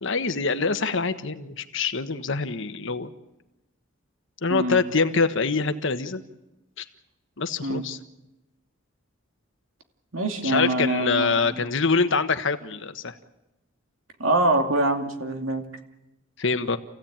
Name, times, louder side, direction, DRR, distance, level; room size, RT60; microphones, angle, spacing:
voice 1, 0.0-3.1 4.4-6.2 6.8-6.9 7.4-8.0 10.4-13.1 16.4-16.8, left 4 dB, 65° left, 10 dB, 1.3 m, -25 dB
voice 2, 10.1-11.5 14.2-15.6, right 2 dB, 75° right, 5 dB, 2.5 m, -24 dB
28.5 x 16.0 x 8.9 m, 0.97 s
head